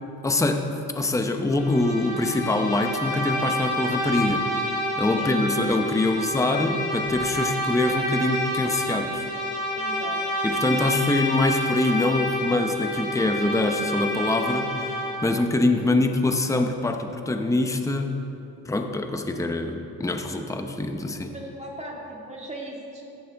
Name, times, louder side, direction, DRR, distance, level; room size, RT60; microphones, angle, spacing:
voice 1, 0.2-4.4 5.0-9.3 10.4-14.9 15.2-18.1 18.7-21.3, left 2 dB, 10° left, 5 dB, 0.7 m, -24 dB
Bowed string instrument, 1.5-15.4, left 1 dB, 85° left, 2.7 m, -28 dB
voice 2, 9.7-10.2 21.2-23.0, right 1 dB, 15° right, -2 dB, 2.0 m, -38 dB
15.0 x 10.5 x 3.4 m, 2.8 s
cardioid pair, 115°, 38 cm